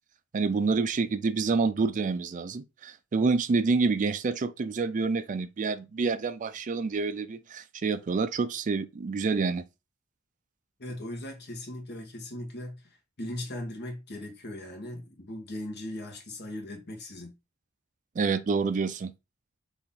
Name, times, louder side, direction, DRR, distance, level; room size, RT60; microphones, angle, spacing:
voice 1, 0.3-9.6 18.2-19.1, right 4 dB, 35° right, 0.4 m, -28 dB
voice 2, 10.8-17.3, left 1 dB, 50° left, 1.2 m, -39 dB
4.1 x 2.9 x 3.6 m
head